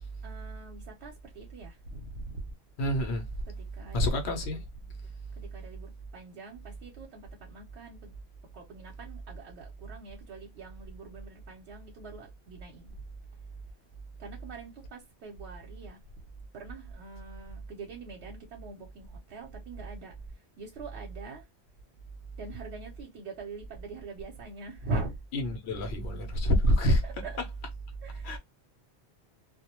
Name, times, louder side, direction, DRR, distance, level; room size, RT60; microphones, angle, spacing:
voice 1, 0.2-2.4 3.4-4.5 5.0-8.1 8.5-12.9 14.2-16.0 16.5-21.5 22.4-25.2 27.0-27.4 28.0-28.4, right 3 dB, 80° right, 0.9 m, -43 dB
voice 2, 2.8-3.2 3.9-4.6 25.5-27.0 28.2-28.4, equal, 80° left, 0.9 m, -26 dB
2.3 x 2.1 x 2.8 m
omnidirectional pair, 1.1 m